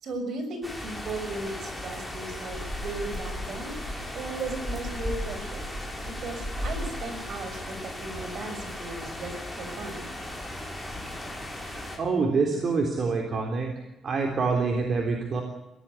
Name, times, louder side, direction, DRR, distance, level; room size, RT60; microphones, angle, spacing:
voice 1, 0.0-3.8 4.1-5.8 6.0-10.1, right 2 dB, 60° right, 8 dB, 6.3 m, -36 dB
sound 1, 0.6-12.0, left 1 dB, ahead, 5.9 m, -36 dB
voice 2, 12.0-13.7 14.0-15.4, right 4 dB, 45° right, 3 dB, 3.5 m, -26 dB
23.5 x 18.0 x 8.5 m, 1.0 s
cardioid pair, 130°, 0 cm